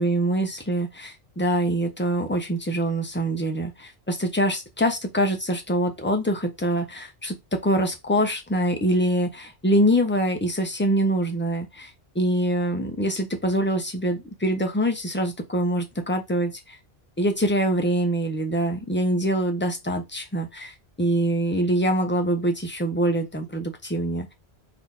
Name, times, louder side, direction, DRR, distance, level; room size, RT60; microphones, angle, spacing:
voice 1, 0.0-11.9 12.1-16.8 17.2-24.3, right 1 dB, 10° left, 0.7 m, -24 dB
4.3 x 2.9 x 3.5 m
omnidirectional pair, 1.1 m